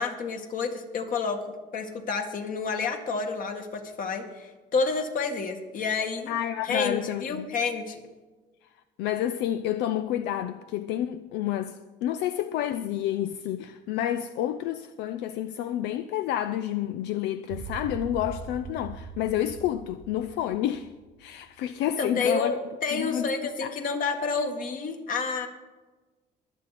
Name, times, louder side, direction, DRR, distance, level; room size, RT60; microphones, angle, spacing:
voice 1, 0.0-6.3 6.6-8.0 22.0-25.5, left 4 dB, 55° left, 2.1 m, -29 dB
voice 2, 6.3-7.5 9.0-20.9 21.2-22.6 22.9-23.3 23.6-23.7, left 11 dB, 85° left, 0.5 m, -29 dB
sound 1, 17.5-21.8, right 5 dB, 85° right, 1.5 m, -41 dB
23.5 x 8.1 x 4.2 m
cardioid pair, 110°, 17 cm